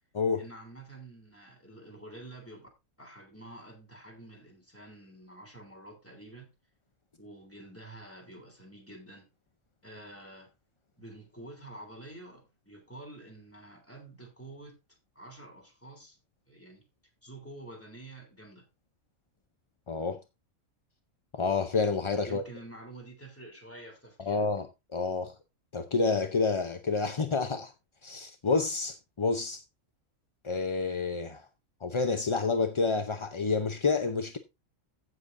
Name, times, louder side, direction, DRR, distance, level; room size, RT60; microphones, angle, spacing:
voice 1, 0.4-2.7 3.0-6.5 7.2-9.3 9.8-10.5 11.0-14.8 15.1-16.2 16.5-16.8 17.2-18.6 22.2-24.4, right 2 dB, 10° left, 3.3 m, -48 dB
voice 2, 19.9-20.2 21.3-22.4 24.2-24.7 24.9-25.4 25.7-27.7 28.0-29.6 30.4-31.5 31.8-34.4, left 4 dB, 35° left, 0.5 m, -29 dB
15.5 x 6.9 x 2.6 m
omnidirectional pair, 1.4 m